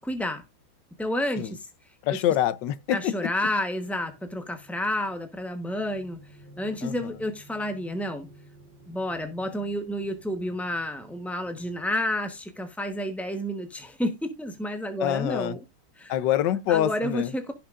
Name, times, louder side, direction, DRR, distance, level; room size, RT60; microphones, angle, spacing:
voice 1, 0.0-0.4 1.0-1.7 2.9-6.2 6.6-8.3 8.9-15.6 16.0-16.1 16.7-17.5, left 1 dB, ahead, 0.4 m, -30 dB
voice 2, 2.0-3.3 6.8-7.2 15.0-15.6 16.1-17.3, left 11 dB, 65° left, 1.3 m, -26 dB
sound 1, 3.9-12.6, right 1 dB, 60° right, 7.3 m, -53 dB
16.5 x 5.9 x 2.5 m
omnidirectional pair, 2.3 m